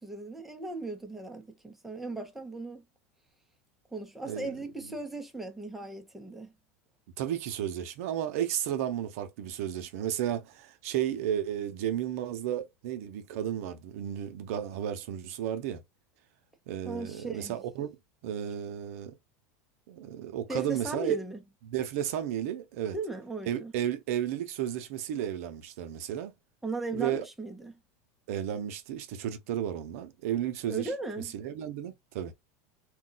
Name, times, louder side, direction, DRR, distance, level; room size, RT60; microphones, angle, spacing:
voice 1, 0.0-2.8 3.9-6.5 16.8-17.6 20.5-21.4 22.9-23.7 26.6-27.8 30.7-31.3, right 2 dB, 5° right, 0.6 m, -37 dB
voice 2, 7.2-15.8 16.7-17.9 18.2-19.2 19.9-21.2 21.6-23.0 23.5-26.3 26.9-27.2 28.3-30.9 31.3-32.3, right 10 dB, 75° right, 0.6 m, -33 dB
2.3 x 2.2 x 3.9 m
supercardioid pair, 140°, 8 cm